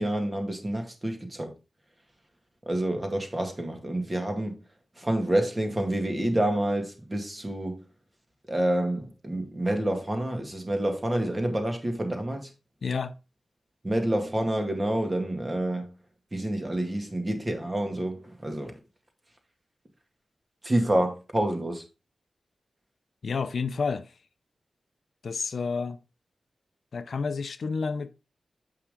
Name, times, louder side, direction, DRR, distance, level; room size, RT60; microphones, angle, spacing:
voice 1, 0.0-1.5 2.7-4.6 5.0-7.8 8.5-12.5 13.8-15.9 16.3-18.8 20.6-21.8, right 1 dB, 25° right, 2.0 m, -28 dB
voice 2, 12.8-13.1 23.2-24.1 25.2-26.0 26.9-28.1, left 5 dB, 70° left, 0.5 m, -30 dB
7.2 x 5.6 x 3.6 m
cardioid pair, 55°, 0 cm